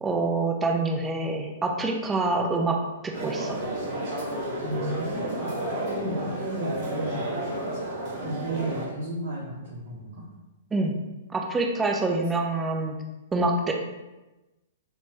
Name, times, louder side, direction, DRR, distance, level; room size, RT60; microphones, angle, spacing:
voice 1, 0.0-3.6 10.7-11.0 11.3-13.0 13.3-13.7, right 2 dB, 15° right, 2 dB, 0.4 m, -26 dB
sound 1, 3.1-8.9, right 1 dB, 50° right, 1.1 m, -31 dB
voice 2, 4.6-5.6 5.9-7.3 8.2-10.3, right 1 dB, 65° right, -5 dB, 0.6 m, -33 dB
3.0 x 2.1 x 2.8 m, 1.1 s
hypercardioid pair, 125°, 0 cm